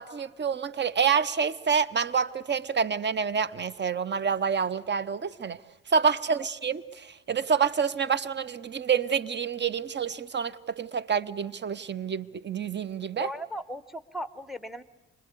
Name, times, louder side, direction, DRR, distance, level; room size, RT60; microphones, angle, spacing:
voice 1, 0.0-5.6 5.9-13.3, right 6 dB, 25° right, 18 dB, 0.8 m, -27 dB
voice 2, 13.2-14.8, equal, ahead, 15 dB, 0.9 m, -37 dB
25.5 x 20.5 x 8.3 m, 1.1 s
hypercardioid pair, 45°, 40 cm